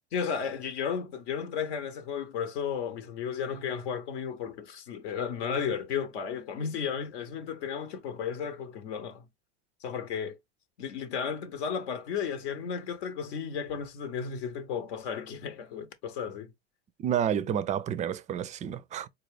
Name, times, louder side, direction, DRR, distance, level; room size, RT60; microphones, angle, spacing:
voice 1, 0.1-9.3 9.8-10.4 10.8-16.5, left 7 dB, 75° left, 0.8 m, -34 dB
voice 2, 17.0-19.1, right 9 dB, 25° right, 0.3 m, -30 dB
4.0 x 2.3 x 3.2 m
supercardioid pair, 115°, 33 cm